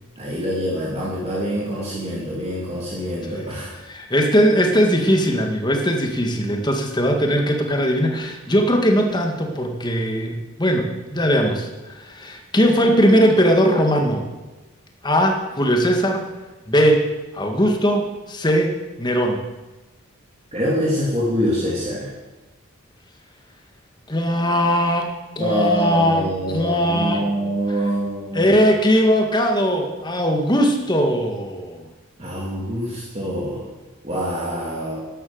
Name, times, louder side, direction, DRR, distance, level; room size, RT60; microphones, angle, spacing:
voice 1, 0.2-3.7 20.5-22.1 25.4-28.5 32.2-33.6 34.0-35.0, equal, 30° right, -5 dB, 2.8 m, -25 dB
voice 2, 3.9-14.3 15.0-16.3 16.7-17.1 17.3-18.7 19.0-19.4 24.1-27.2 28.3-31.9, equal, 20° left, 3 dB, 1.9 m, -19 dB
12.0 x 11.5 x 7.9 m, 1.1 s
head